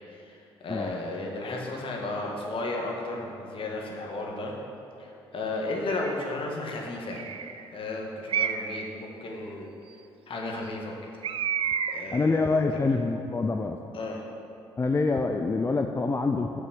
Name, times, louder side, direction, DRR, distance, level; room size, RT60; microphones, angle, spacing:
voice 1, 0.1-4.5 5.0-7.2 7.7-9.7 10.3-10.9 11.9-12.8 13.9-14.3, left 2 dB, 55° left, -1 dB, 1.5 m, -34 dB
Bird, 5.9-6.3 7.1-7.7 8.3-8.9 11.2-12.2, right 8 dB, 55° right, 0.4 m, -30 dB
voice 2, 12.1-13.8 14.8-16.6, left 3 dB, 25° left, 5 dB, 0.4 m, -26 dB
6.1 x 5.8 x 6.2 m, 2.7 s
supercardioid pair, 60°, 11 cm